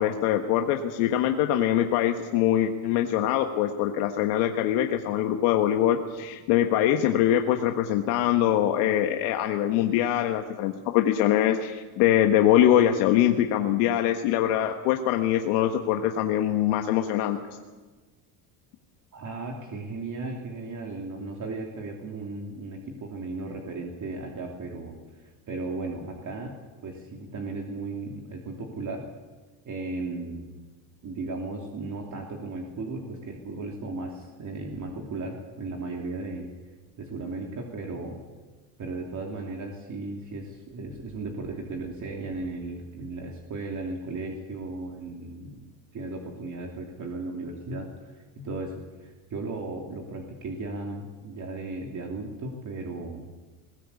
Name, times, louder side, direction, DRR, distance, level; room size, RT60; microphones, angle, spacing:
voice 1, 0.0-17.4, left 11 dB, 90° left, 4 dB, 1.5 m, -23 dB
voice 2, 19.1-29.0 29.6-30.6 31.0-36.5 37.0-38.2 38.8-45.6 45.9-53.3, right 3 dB, 40° right, 1 dB, 3.0 m, -36 dB
21.5 x 16.5 x 8.4 m, 1.3 s
cardioid pair, 120°, 46 cm